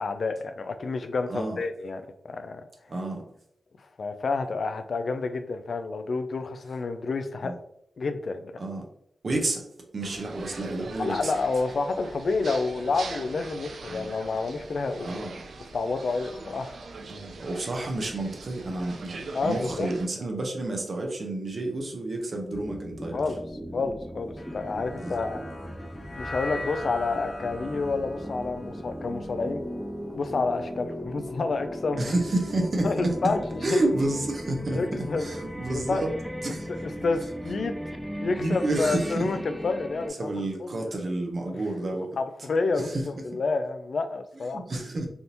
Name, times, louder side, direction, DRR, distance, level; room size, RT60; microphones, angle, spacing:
voice 1, 0.0-2.7 4.0-7.5 8.0-8.6 11.0-15.3 15.7-16.8 19.3-19.9 23.1-23.4 23.7-25.4 26.1-29.6 30.1-32.0 32.8-33.9 34.7-35.3 35.7-36.0 36.8-37.7 38.2-40.2 40.6-41.0 41.5-41.6 42.2-44.6, left 3 dB, 70° left, 9 dB, 0.3 m, -29 dB
voice 2, 2.9-3.2 7.4-7.5 8.6-8.8 9.2-9.7 9.9-11.3 13.9-14.1 15.0-15.4 17.1-23.2 25.0-25.2 26.1-26.2 32.0-33.1 33.6-34.8 35.2-36.1 36.4-37.0 38.4-39.4 40.2-42.1 42.9-43.0 43.3-43.4 44.5-45.1, right 2 dB, 60° right, 1 dB, 0.8 m, -30 dB
sound 1, 10.0-20.1, right 3 dB, 75° right, 0.4 m, -42 dB
sound 2, 22.5-40.1, equal, ahead, 0.4 m, -38 dB
sound 3, 24.4-30.7, left 2 dB, 50° left, 0.7 m, -41 dB
3.4 x 2.5 x 2.8 m, 0.71 s
cardioid pair, 40°, 0 cm